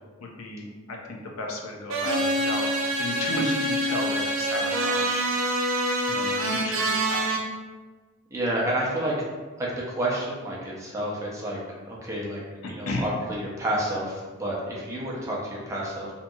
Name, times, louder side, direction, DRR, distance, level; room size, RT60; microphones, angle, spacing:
voice 1, 0.2-2.7 3.0-5.2 6.1-7.4 12.6-13.0, left 2 dB, 75° left, 0 dB, 0.5 m, -33 dB
sound 1, 1.9-7.4, right 1 dB, 65° right, 0.4 m, -26 dB
voice 2, 8.3-9.1 9.6-11.6 11.9-12.4 12.7-16.1, right 1 dB, 15° right, -5 dB, 0.5 m, -30 dB
2.8 x 2.7 x 2.2 m, 1.3 s
head